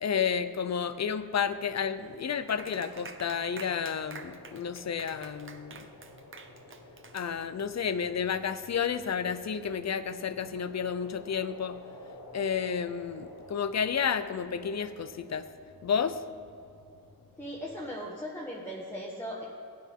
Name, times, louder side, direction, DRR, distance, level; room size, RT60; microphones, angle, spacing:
voice 1, 0.0-5.9 7.1-11.8 12.3-15.5 15.8-16.2, left 7 dB, 50° left, 12 dB, 0.6 m, -31 dB
sound 1, 1.2-18.0, left 2 dB, 70° left, 1.5 m, -52 dB
Clapping, 2.5-7.8, right 4 dB, 35° right, 0.8 m, -48 dB
voice 2, 17.4-19.5, equal, 5° left, -5 dB, 1.4 m, -38 dB
16.0 x 9.5 x 3.7 m, 2.7 s
wide cardioid pair, 95°, 35 cm